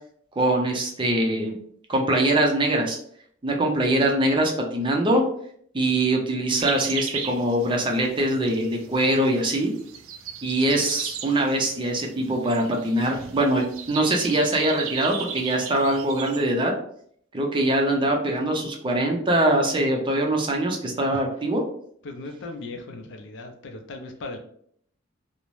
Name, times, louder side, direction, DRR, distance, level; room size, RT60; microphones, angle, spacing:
voice 1, 0.4-1.6 1.9-3.0 3.4-5.2 5.7-9.7 10.4-16.7 17.3-21.6, right 1 dB, 25° right, 1 dB, 0.4 m, -23 dB
sound 1, 6.6-16.4, right 7 dB, 90° right, 0.4 m, -37 dB
voice 2, 22.0-24.4, left 2 dB, 65° left, 5 dB, 0.4 m, -37 dB
2.6 x 2.0 x 3.0 m, 0.64 s
head